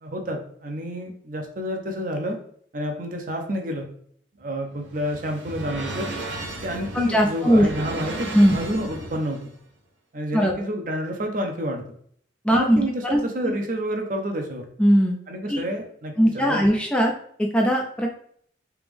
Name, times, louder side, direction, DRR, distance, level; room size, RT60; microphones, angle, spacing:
voice 1, 0.0-2.4 2.7-3.8 4.4-6.1 6.6-9.4 10.1-11.8 12.5-14.6 15.3-16.7, equal, 45° right, 4 dB, 0.6 m, -29 dB
sound 1, 4.4-9.5, right 2 dB, 90° right, 0.9 m, -35 dB
voice 2, 7.1-7.7 8.3-8.6 10.3-10.5 12.4-13.5 14.8-15.2 15.5-15.6 16.2-17.1 17.4-18.1, equal, 5° left, 1 dB, 0.3 m, -19 dB
3.4 x 2.9 x 3.4 m, 0.62 s
head